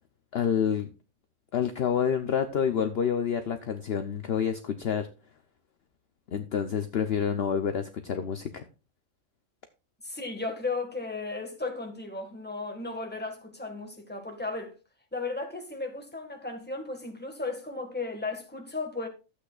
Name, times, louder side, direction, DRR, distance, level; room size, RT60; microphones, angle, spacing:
voice 1, 0.3-0.9 1.5-5.1 6.3-8.7, left 7 dB, 55° left, 0.8 m, -28 dB
voice 2, 10.0-14.8 15.1-19.1, left 3 dB, 10° left, 1.6 m, -35 dB
13.0 x 8.4 x 2.4 m
omnidirectional pair, 1.4 m